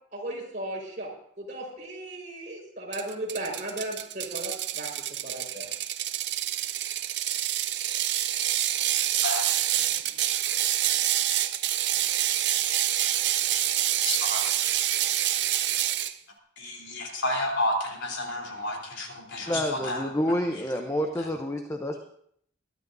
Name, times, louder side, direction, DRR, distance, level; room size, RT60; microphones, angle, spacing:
voice 1, 0.1-1.1 1.4-4.9 5.2-5.7 19.5-19.6, right 1 dB, 45° right, -2 dB, 4.9 m, -36 dB
Ratchet pawl, 2.9-16.1, right 12 dB, 65° right, 0.6 m, -27 dB
voice 2, 14.0-14.4 16.6-20.0 21.2-21.3, left 1 dB, 75° left, 0 dB, 3.6 m, -31 dB
voice 3, 19.5-22.1, equal, 15° left, 4 dB, 0.8 m, -28 dB
22.0 x 12.5 x 2.7 m, 0.67 s
head